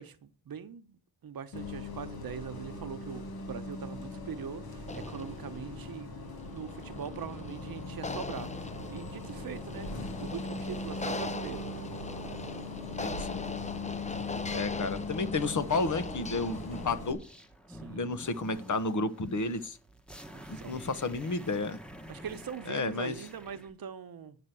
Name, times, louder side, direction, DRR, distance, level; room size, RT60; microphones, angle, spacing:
voice 1, 0.0-6.1 6.5-9.9 10.2-11.8 17.7-18.0 20.3-20.8 22.1-24.4, right 7 dB, 70° right, 1.1 m, -42 dB
Bus, 1.5-17.1, left 2 dB, 85° left, 2.1 m, -40 dB
sound 1, 4.8-17.2, left 3 dB, 20° left, 0.6 m, -41 dB
voice 2, 13.0-13.4 14.5-17.2 17.9-19.8 20.5-21.8 22.7-23.1, left 3 dB, 55° left, 1.1 m, -32 dB
sound 2, 16.3-23.7, equal, 5° left, 1.1 m, -49 dB
9.5 x 6.0 x 6.8 m
wide cardioid pair, 130°, 36 cm